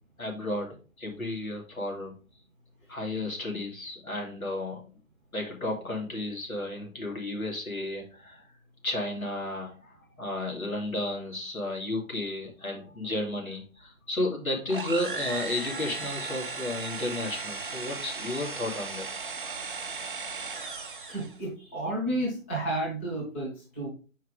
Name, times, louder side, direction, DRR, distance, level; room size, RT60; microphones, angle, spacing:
voice 1, 0.2-2.2 2.9-4.8 5.3-8.5 8.8-19.1 19.4-19.6, left 1 dB, 85° left, -1 dB, 2.5 m, -33 dB
sound 1, 14.7-21.4, right 4 dB, 40° right, 0.6 m, -36 dB
voice 2, 21.1-23.9, right 1 dB, 10° left, -5 dB, 0.9 m, -31 dB
4.8 x 4.6 x 5.0 m, 0.35 s
figure-of-eight pair, 155°, 41 cm